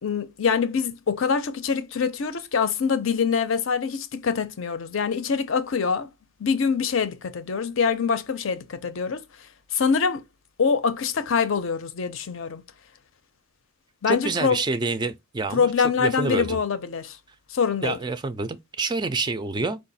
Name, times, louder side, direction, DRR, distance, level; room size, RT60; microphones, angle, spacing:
voice 1, 0.0-6.1 6.4-9.2 9.7-10.2 10.6-12.6 14.0-14.6 15.5-17.2 17.5-18.0, left 6 dB, 65° left, 0.6 m, -24 dB
voice 2, 14.1-16.6 17.8-19.8, right 3 dB, 20° right, 0.3 m, -27 dB
4.6 x 2.4 x 4.0 m
head